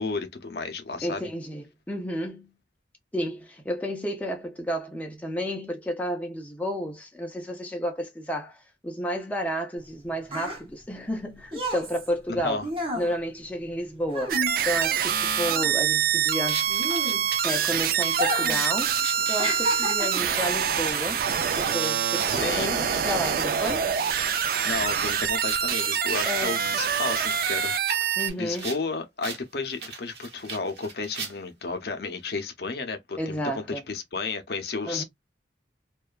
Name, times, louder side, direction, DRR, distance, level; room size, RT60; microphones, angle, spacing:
voice 1, 0.0-1.2 12.4-12.6 22.3-22.7 24.6-27.7 28.4-35.0, left 4 dB, 60° left, 0.5 m, -32 dB
voice 2, 1.0-2.5 3.1-12.6 12.9-14.4 14.6-16.7 17.4-21.2 21.5-23.8 26.3-26.6 28.2-28.7 33.2-33.8 34.9-35.0, equal, 10° left, 0.4 m, -31 dB
sound 1, 9.8-15.1 15.4-17.6 18.1-18.7 18.9-20.4 21.1-21.3, equal, 30° right, 0.8 m, -32 dB
sound 2, 14.3-28.3, right 8 dB, 55° right, 0.3 m, -25 dB
sound 3, 16.5-26.0 26.5-28.8 29.2-29.4 29.7-31.6, right 5 dB, 70° right, 0.9 m, -39 dB
2.6 x 2.2 x 2.3 m
head